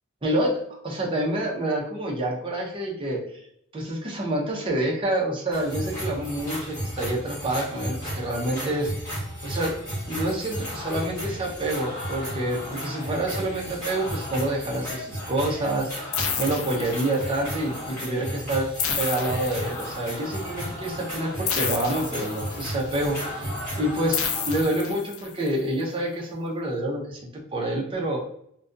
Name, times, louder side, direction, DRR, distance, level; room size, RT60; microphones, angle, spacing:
voice 1, 0.2-3.2 3.7-8.9 9.4-9.7 10.1-18.7 19.0-23.5 23.8-28.3, right 1 dB, 25° right, -2 dB, 0.6 m, -27 dB
sound 1, 5.5-24.6, equal, 10° left, 1.2 m, -34 dB
sound 2, 16.1-17.5 18.8-20.2 21.5-22.8 24.1-25.5, left 7 dB, 90° left, 0.4 m, -30 dB
2.4 x 2.2 x 2.5 m, 0.72 s
head